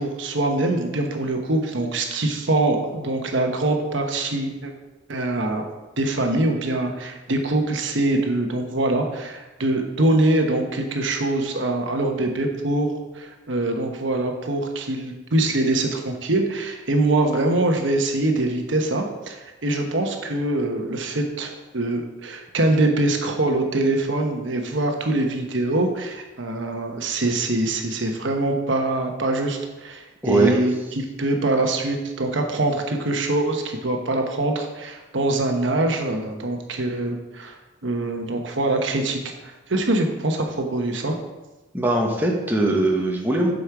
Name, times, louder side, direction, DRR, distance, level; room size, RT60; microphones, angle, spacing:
voice 1, 0.0-4.7 5.1-5.6 6.0-12.9 13.1-37.6 37.8-41.2, right 2 dB, 65° right, 3 dB, 1.1 m, -23 dB
voice 2, 41.7-43.5, right 2 dB, 10° right, -1 dB, 1.1 m, -20 dB
8.1 x 5.3 x 6.0 m, 1.1 s
head